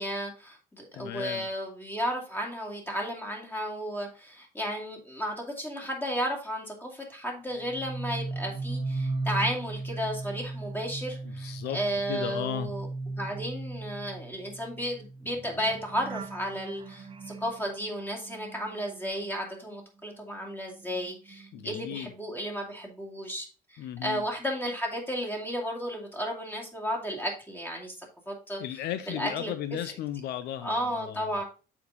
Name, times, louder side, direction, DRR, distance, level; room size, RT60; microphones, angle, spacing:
voice 1, 0.0-12.9 13.2-27.9 28.3-28.6 29.1-29.5 29.8-29.9 30.6-31.4, equal, 10° left, 2.4 m, -33 dB
voice 2, 0.9-1.5 11.2-11.8 12.1-12.7 21.5-22.1 23.8-24.2 28.6-31.4, left 11 dB, 75° left, 0.6 m, -35 dB
sound 1, 7.6-19.8 20.1-22.2 22.5-22.9, right 3 dB, 30° right, 1.0 m, -38 dB
6.9 x 5.0 x 4.0 m
cardioid pair, 110°, 17 cm